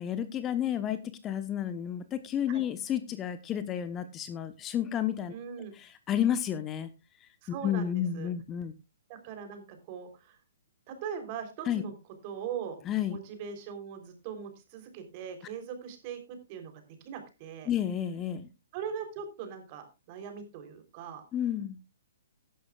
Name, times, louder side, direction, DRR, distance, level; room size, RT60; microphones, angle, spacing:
voice 1, 0.0-5.3 5.8-6.9 7.2-8.7 11.6-11.8 12.8-13.2 17.7-18.5 21.3-21.8, left 10 dB, 20° left, 11 dB, 1.0 m, -31 dB
voice 2, 5.3-5.7 7.4-8.3 9.1-10.4 10.9-11.9 12.2-12.8 13.1-16.2 16.5-16.7 17.0-17.7 18.7-21.2, right 7 dB, 40° right, 7 dB, 3.5 m, -40 dB
15.5 x 11.5 x 2.4 m, 0.27 s
figure-of-eight pair, 125°, 0 cm